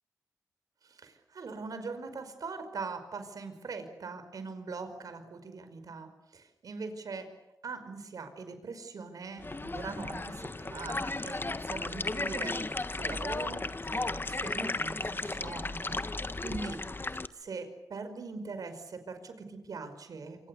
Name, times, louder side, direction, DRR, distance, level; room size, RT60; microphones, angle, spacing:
voice 1, 0.8-7.3 7.6-16.8 17.3-20.4, right 4 dB, 75° right, 9 dB, 5.2 m, -42 dB
sound 1, 9.4-17.3, left 2 dB, 35° left, 1.5 m, -35 dB
27.0 x 26.0 x 7.0 m, 0.95 s
supercardioid pair, 40°, 6 cm